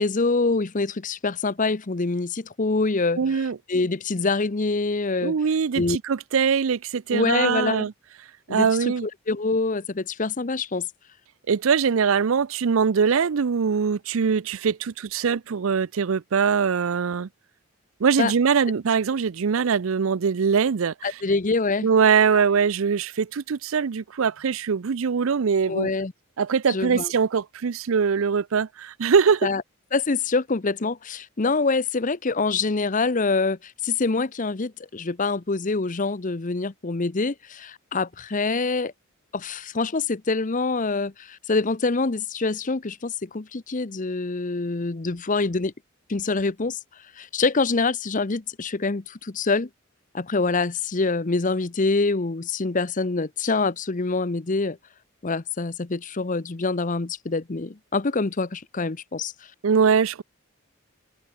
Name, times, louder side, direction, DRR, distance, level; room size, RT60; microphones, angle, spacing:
voice 1, 0.0-5.4 5.7-6.0 7.1-7.9 8.5-10.9 18.2-18.3 21.0-21.9 22.3-22.4 25.7-26.1 26.7-27.1 29.4-29.6 29.9-38.9 39.3-45.7 46.1-46.8 47.2-49.7 50.1-54.8 55.2-59.3, left 3 dB, 35° left, 0.8 m, -25 dB
voice 2, 3.2-3.6 5.2-7.9 8.5-9.1 11.5-17.3 18.0-21.1 21.8-25.9 26.4-29.5 59.6-60.2, right 6 dB, 65° right, 0.5 m, -22 dB
open air
head